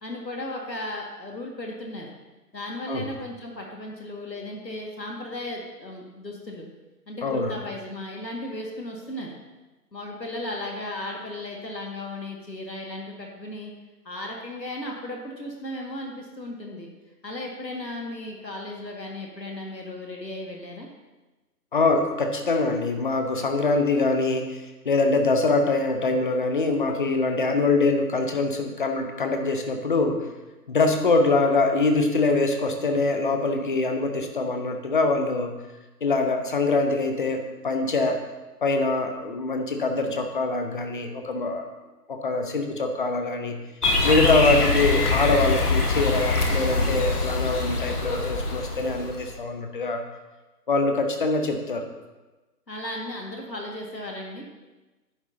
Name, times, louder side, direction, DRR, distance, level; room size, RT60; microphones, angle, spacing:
voice 1, 0.0-2.1 2.5-6.7 7.1-9.3 9.9-13.7 14.1-16.9 17.2-20.9 52.7-54.5, left 1 dB, 90° left, 0 dB, 1.9 m, -35 dB
voice 2, 7.2-7.5 21.7-30.3 30.7-35.5 36.0-38.2 38.6-41.6 42.1-43.6 44.0-50.0 50.7-51.9, left 3 dB, 30° left, 5 dB, 0.8 m, -24 dB
sound 1, 43.8-49.4, left 3 dB, 65° left, 1.6 m, -24 dB
10.5 x 9.0 x 2.7 m, 1.1 s
figure-of-eight pair, 140°, 49 cm